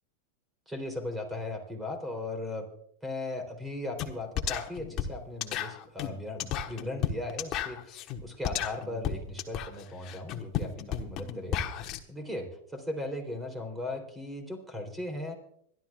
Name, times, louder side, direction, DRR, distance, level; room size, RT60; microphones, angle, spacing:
voice 1, 0.7-2.7 3.0-15.3, left 2 dB, 10° right, 5 dB, 3.5 m, -38 dB
sound 1, 4.0-4.1 4.4-12.0, left 9 dB, 40° left, 1.2 m, -33 dB
25.5 x 12.0 x 2.4 m, 0.67 s
supercardioid pair, 130°, 0 cm